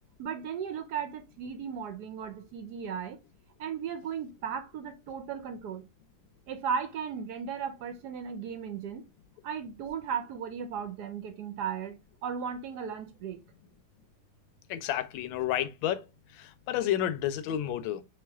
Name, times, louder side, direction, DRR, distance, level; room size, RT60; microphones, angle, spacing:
voice 1, 0.2-3.2 3.6-5.8 6.5-9.0 9.4-13.4, right 7 dB, 70° right, 1.0 m, -36 dB
voice 2, 14.7-16.0 16.3-18.0, left 11 dB, 90° left, 1.3 m, -30 dB
3.6 x 3.2 x 3.4 m
omnidirectional pair, 2.1 m